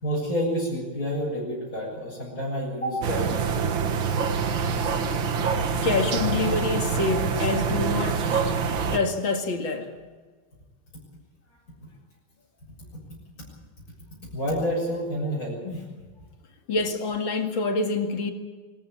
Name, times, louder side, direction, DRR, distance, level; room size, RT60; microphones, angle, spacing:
voice 1, 0.0-3.9 14.3-15.9, equal, 40° left, -6 dB, 7.2 m, -29 dB
sound 1, 3.0-9.0, right 5 dB, 65° right, 2.1 m, -25 dB
voice 2, 5.8-8.6 8.9-9.9 16.7-18.3, left 3 dB, 65° left, 5 dB, 2.9 m, -26 dB
24.5 x 15.0 x 8.7 m, 1.4 s
omnidirectional pair, 2.3 m